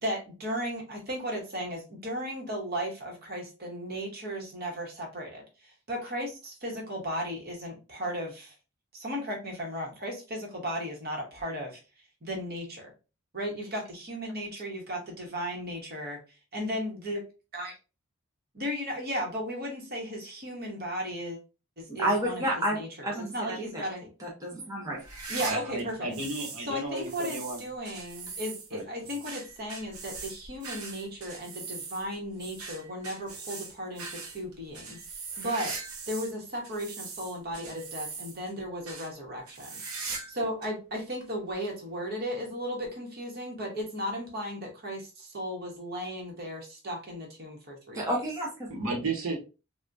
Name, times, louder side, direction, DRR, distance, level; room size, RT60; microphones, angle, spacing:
voice 1, 0.0-8.5 8.9-11.8 12.2-12.9 13.3-16.2 16.5-17.2 17.5-17.7 18.5-21.4 21.8-22.4 22.8-22.9 23.3-24.1 25.3-26.2 26.7-35.0 35.4-35.7 36.1-39.7 40.3-48.0, equal, 45° right, 0 dB, 1.1 m, -35 dB
voice 2, 21.9-23.8 24.2-25.0 47.9-48.7, right 1 dB, 15° right, -3 dB, 0.7 m, -30 dB
sound 1, 25.0-26.7 27.0-36.3 36.6-38.5 38.9-39.1 39.5-40.4 40.6-40.7 41.5-41.6 42.8-42.9, right 4 dB, 90° right, 0.8 m, -40 dB
voice 3, 25.4-27.7 28.7-28.9 48.7-49.4, right 2 dB, 70° right, -1 dB, 1.1 m, -33 dB
3.4 x 2.3 x 2.6 m, 0.31 s
head